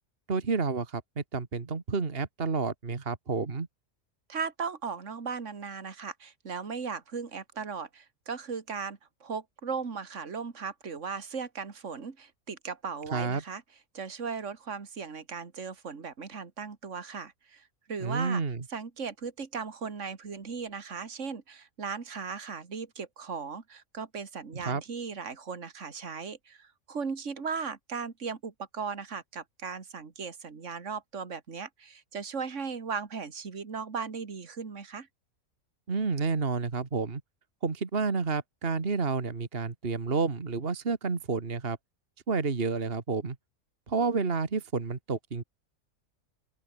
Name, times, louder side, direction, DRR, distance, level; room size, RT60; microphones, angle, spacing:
voice 1, 0.3-3.7 13.1-13.4 18.0-18.6 24.5-24.8 35.9-37.2 37.6-41.8 42.3-43.4 43.9-45.4, right 4 dB, 45° right, 2.0 m, -30 dB
voice 2, 4.3-13.6 13.9-18.4 18.7-35.1, right 5 dB, 60° right, 2.4 m, -37 dB
open air
omnidirectional pair, 1.4 m